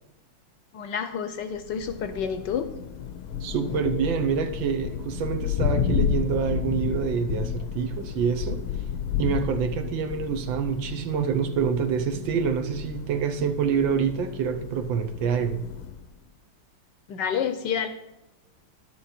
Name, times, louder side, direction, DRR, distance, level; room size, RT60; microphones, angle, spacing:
voice 1, 0.7-2.7 17.1-17.9, left 7 dB, 70° left, 9 dB, 1.2 m, -29 dB
Thunder, 1.6-16.1, left 8 dB, 85° left, 1.7 m, -32 dB
voice 2, 3.4-8.6 9.2-15.6, right 7 dB, 70° right, 7 dB, 1.5 m, -26 dB
11.5 x 8.1 x 4.3 m, 0.93 s
omnidirectional pair, 2.2 m